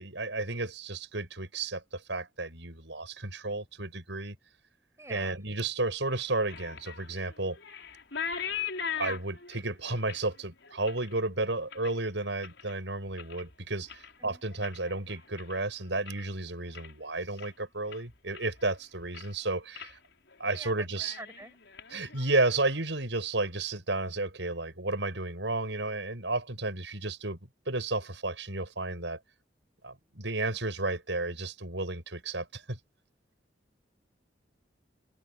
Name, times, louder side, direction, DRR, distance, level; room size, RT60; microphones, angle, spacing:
voice 1, 0.0-4.3 5.1-7.6 9.0-20.0 20.4-21.2 21.9-27.4 27.7-29.2 29.8-32.8, right 2 dB, 80° right, 6.4 m, -32 dB
voice 2, 5.0-5.4 14.3-14.4 20.6-20.7 21.0-21.5, right 2 dB, 15° right, 7.7 m, -46 dB
sound 1, 6.1-12.7 13.1-13.5 13.8-16.3 16.6-17.0 17.4-17.5 17.9-18.7 19.0-19.4 19.7-19.9 20.3-20.6 20.9-22.8, left 7 dB, 80° left, 5.5 m, -41 dB
head